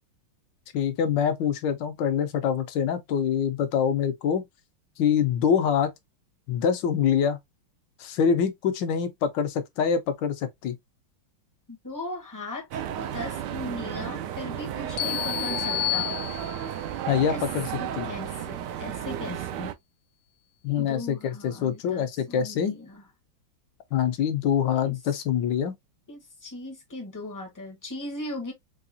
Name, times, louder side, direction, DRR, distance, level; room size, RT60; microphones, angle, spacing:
voice 1, 0.7-4.5 5.0-5.9 6.5-7.4 8.0-10.8 17.1-17.7 18.0-18.1 20.6-22.8 23.9-25.7, left 8 dB, 70° left, 1.3 m, -25 dB
voice 2, 11.8-16.2 17.3-17.4 17.8-19.7 20.7-23.0 24.8-25.0 26.1-28.5, left 2 dB, 15° left, 0.6 m, -38 dB
sound 1, 12.7-19.7, right 10 dB, 75° right, 1.0 m, -33 dB
sound 2, 15.0-16.8, left 20 dB, 90° left, 1.5 m, -30 dB
4.8 x 2.3 x 2.5 m
omnidirectional pair, 2.2 m